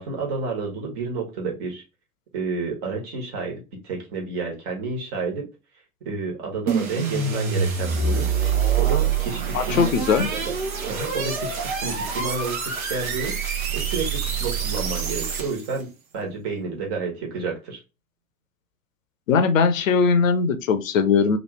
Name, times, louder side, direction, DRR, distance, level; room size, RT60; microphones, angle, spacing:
voice 1, 0.0-1.8 2.3-5.5 6.0-9.8 10.2-10.4 10.9-15.9 16.1-17.8, right 4 dB, 45° right, 1.4 m, -30 dB
sound 1, 6.7-15.8, right 6 dB, 70° right, 0.9 m, -26 dB
voice 2, 9.5-10.3 19.3-21.4, left 5 dB, 65° left, 0.6 m, -20 dB
3.0 x 2.5 x 3.1 m
figure-of-eight pair, 85°, 43 cm